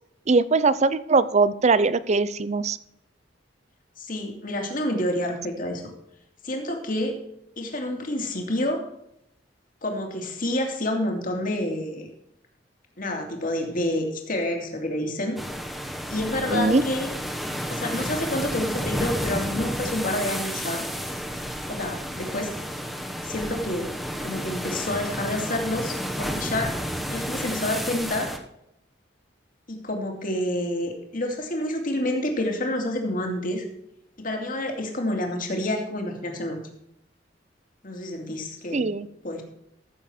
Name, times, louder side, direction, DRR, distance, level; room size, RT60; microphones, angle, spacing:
voice 1, 0.3-2.8 16.5-16.8 38.7-39.1, right 3 dB, 40° right, 16 dB, 0.6 m, -21 dB
voice 2, 4.0-5.9 6.4-7.2 7.6-8.8 9.8-12.1 13.0-15.4 16.1-17.1 17.7-20.8 21.7-22.5 23.2-23.9 24.2-26.8 27.1-28.3 29.7-33.6 34.2-36.6 37.8-38.9 39.2-39.4, left 1 dB, 50° left, 3 dB, 2.4 m, -28 dB
sound 1, 15.4-28.4, equal, ahead, 1.2 m, -31 dB
14.5 x 7.1 x 4.4 m, 0.77 s
head